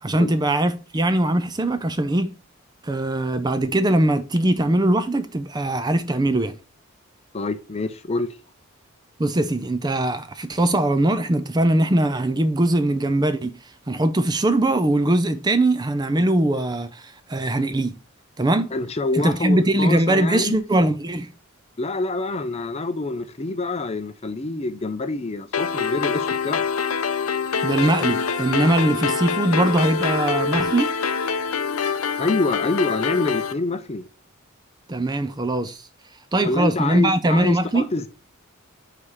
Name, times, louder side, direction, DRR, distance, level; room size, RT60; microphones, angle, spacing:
voice 1, 0.0-2.3 2.8-6.5 9.2-13.5 13.9-18.0 18.4-18.7 19.1-21.3 27.6-30.9 34.9-35.9 36.3-37.9, right 1 dB, 20° right, 0.5 m, -21 dB
voice 2, 7.3-8.3 18.7-20.6 21.8-26.6 32.2-34.0 36.4-38.1, left 2 dB, 30° left, 0.5 m, -26 dB
sound 1, 25.5-33.5, left 5 dB, 75° left, 0.6 m, -25 dB
4.8 x 4.8 x 5.5 m
head